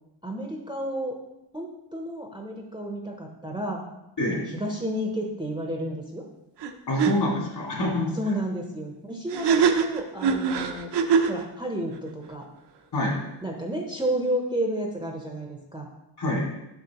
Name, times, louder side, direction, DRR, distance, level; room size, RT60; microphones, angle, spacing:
voice 1, 0.2-1.2 1.5-3.8 4.6-6.2 8.1-10.9 11.3-12.5 13.4-15.9, right 1 dB, 10° right, 0 dB, 0.7 m, -31 dB
sound 1, 6.6-6.7 7.0-7.1 9.3-11.4, right 6 dB, 60° right, 0.6 m, -22 dB
voice 2, 6.9-8.1 12.9-13.2 16.2-16.5, left 1 dB, 55° left, -3 dB, 2.3 m, -26 dB
6.3 x 6.3 x 2.9 m, 0.90 s
wide cardioid pair, 110°, 47 cm